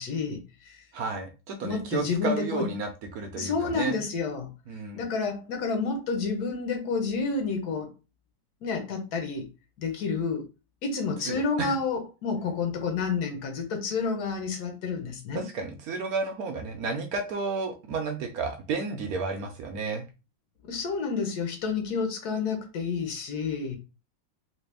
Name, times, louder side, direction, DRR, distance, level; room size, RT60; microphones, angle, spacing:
voice 1, 0.0-0.8 1.6-2.7 3.4-4.5 4.9-7.9 8.6-9.5 9.8-10.5 10.8-15.5 20.6-23.8, left 4 dB, 60° left, 4 dB, 1.3 m, -29 dB
voice 2, 0.9-4.0 4.7-5.0 11.2-11.8 15.3-20.0, right 4 dB, 75° right, 5 dB, 0.8 m, -32 dB
3.2 x 2.8 x 3.3 m, 0.30 s
omnidirectional pair, 2.1 m